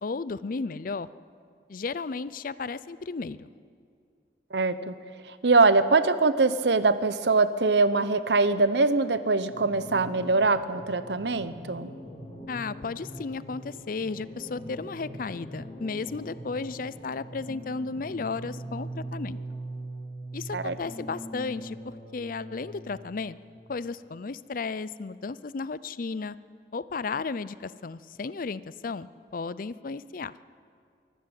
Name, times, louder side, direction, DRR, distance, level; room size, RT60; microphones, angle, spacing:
voice 1, 0.0-1.1 1.7-3.5 12.5-19.4 20.3-23.4 23.7-26.4 26.7-30.3, left 4 dB, 50° left, 17 dB, 0.5 m, -34 dB
voice 2, 4.5-5.0 5.3-11.9 20.5-20.8, right 3 dB, 75° right, 14 dB, 0.9 m, -23 dB
sound 1, 9.5-23.6, right 1 dB, 35° left, 3.1 m, -41 dB
23.5 x 13.5 x 8.9 m, 2.3 s
head